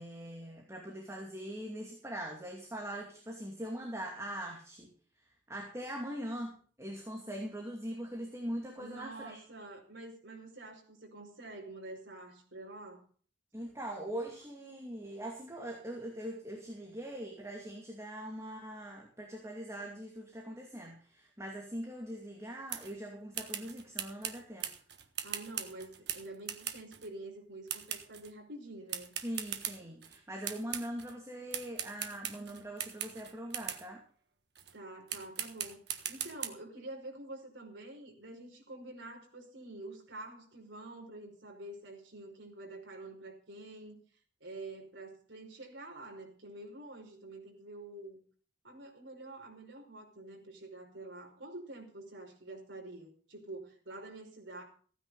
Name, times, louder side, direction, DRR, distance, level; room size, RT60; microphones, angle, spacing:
voice 1, 0.0-9.4 13.5-24.7 29.2-34.0, equal, 15° right, 0 dB, 2.5 m, -42 dB
voice 2, 8.8-13.0 25.2-29.2 34.7-35.8 36.1-44.0 44.4-48.2 48.6-54.6, right 2 dB, 75° right, 1 dB, 5.2 m, -47 dB
sound 1, 22.7-22.9 23.3-27.1 27.7-28.3 28.9-30.2 30.4-31.1 31.5-33.9 34.6-34.7 35.1-36.5, right 10 dB, 60° right, 1.5 m, -40 dB
15.5 x 9.8 x 5.6 m, 0.44 s
head